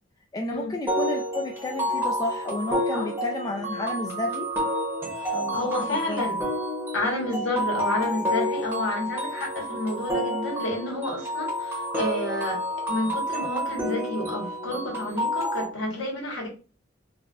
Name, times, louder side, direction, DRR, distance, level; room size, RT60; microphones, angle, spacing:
voice 1, 0.3-4.5 5.3-6.3, left 2 dB, 20° left, 0.3 m, -32 dB
sound 1, 0.9-15.6, equal, 10° right, 0.9 m, -29 dB
voice 2, 5.1-6.4 6.9-12.6 12.9-16.5, left 1 dB, 80° left, 1.1 m, -30 dB
3.9 x 2.2 x 2.3 m
head